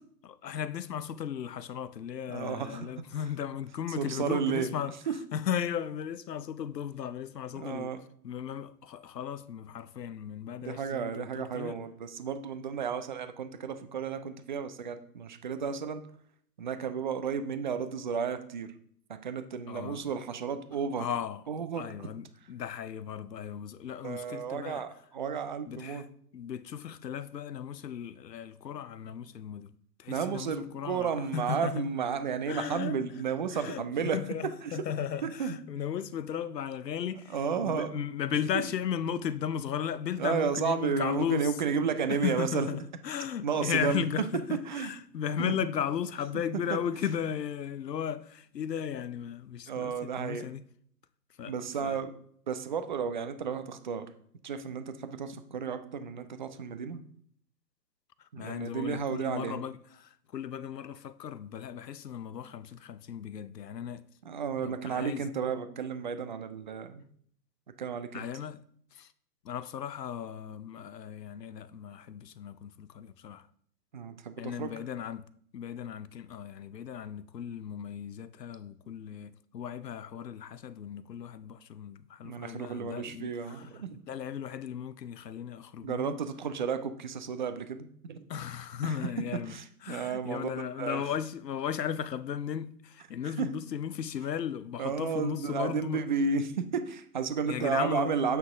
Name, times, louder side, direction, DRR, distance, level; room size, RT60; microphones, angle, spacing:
voice 1, 0.2-5.0 5.3-7.9 8.2-11.8 19.7-20.0 21.0-21.4 21.7-24.8 25.7-26.1 26.3-31.9 32.5-33.0 33.5-41.6 41.8-50.6 51.4-51.5 51.8-52.0 58.2-64.0 64.6-65.3 68.1-68.6 68.9-69.1 69.4-73.5 74.4-75.2 75.5-86.2 88.3-96.0 97.5-98.1, left 9 dB, 75° left, 0.7 m, -36 dB
voice 2, 2.3-2.9 4.0-4.7 5.1-5.2 7.5-8.0 10.6-16.0 16.6-18.7 19.2-21.0 21.5-21.8 24.0-24.9 25.1-26.0 30.1-34.2 34.6-34.7 35.2-35.6 37.3-38.0 38.5-38.6 40.2-42.7 43.4-44.0 44.7-44.9 45.4-45.5 49.7-50.5 51.5-52.1 52.5-54.0 54.4-57.0 58.3-59.6 64.3-67.0 67.8-68.3 73.9-74.7 82.2-84.0 85.8-88.2 88.8-88.9 89.5-91.0 93.4-93.5 94.8-98.4, right 6 dB, 30° right, 0.4 m, -32 dB
8.0 x 5.8 x 3.5 m
figure-of-eight pair, 125°, 50 cm